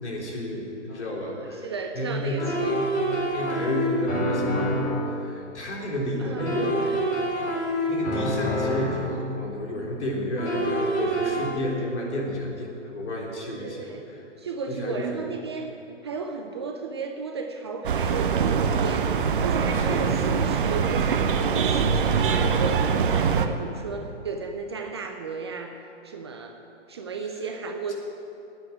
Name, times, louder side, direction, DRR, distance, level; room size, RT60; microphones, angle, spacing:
voice 1, 0.0-6.8 7.9-14.2 14.7-15.2 19.7-20.1, left 1 dB, 65° left, -1 dB, 3.6 m, -31 dB
sound 1, 0.9-1.0 2.4-5.0 6.4-9.1 10.4-11.4, equal, 25° left, 3.8 m, -27 dB
voice 2, 1.6-2.8 6.2-7.0 13.5-14.0 14.4-15.7 16.0-25.8 26.0-26.6 26.9-27.9, right 4 dB, 25° right, 4 dB, 0.5 m, -34 dB
sound 2, 17.8-23.5, right 6 dB, 45° right, 0.9 m, -23 dB
10.5 x 8.7 x 9.8 m, 2.8 s
hypercardioid pair, 140°, 36 cm